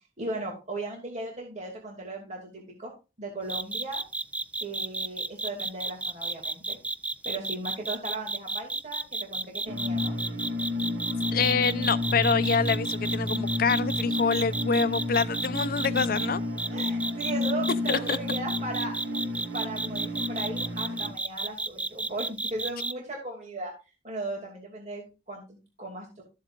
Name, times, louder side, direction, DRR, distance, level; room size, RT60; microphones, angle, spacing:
voice 1, 0.2-2.9 3.2-4.0 4.6-6.8 7.2-10.1 11.5-11.6 15.9-16.0 16.7-19.0 19.5-23.7 24.0-26.2, right 2 dB, 40° right, 2.5 m, -37 dB
sound 1, 3.5-16.3 16.6-22.9, right 2 dB, 10° right, 0.3 m, -32 dB
sound 2, 9.7-21.1, left 2 dB, 90° right, 2.2 m, -31 dB
voice 2, 11.3-16.4 17.9-18.2, left 5 dB, 55° left, 0.6 m, -26 dB
13.5 x 7.6 x 2.5 m
head